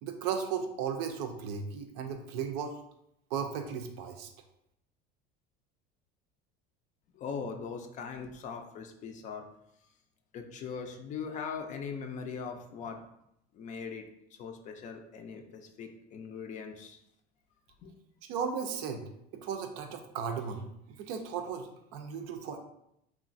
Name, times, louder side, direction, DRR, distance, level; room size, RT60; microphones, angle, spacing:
voice 1, 0.0-2.8 3.3-4.3 18.3-19.0 19.3-20.7 21.0-21.7 21.9-22.6, right 7 dB, 75° right, 5 dB, 0.5 m, -35 dB
voice 2, 7.1-9.5 10.3-13.0 13.5-17.0 17.8-17.9, left 6 dB, 40° left, 5 dB, 0.4 m, -40 dB
3.0 x 2.4 x 2.5 m, 0.78 s
supercardioid pair, 115°, 21 cm